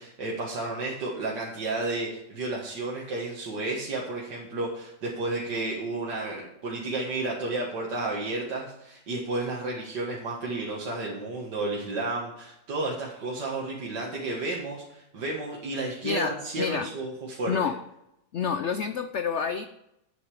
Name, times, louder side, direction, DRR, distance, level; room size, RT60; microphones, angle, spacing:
voice 1, 0.0-17.6, right 2 dB, 70° right, -3 dB, 2.3 m, -32 dB
voice 2, 16.0-16.9 17.5-17.8 18.3-19.7, left 6 dB, 75° left, 10 dB, 0.6 m, -28 dB
11.0 x 9.1 x 4.9 m, 0.84 s
omnidirectional pair, 1.9 m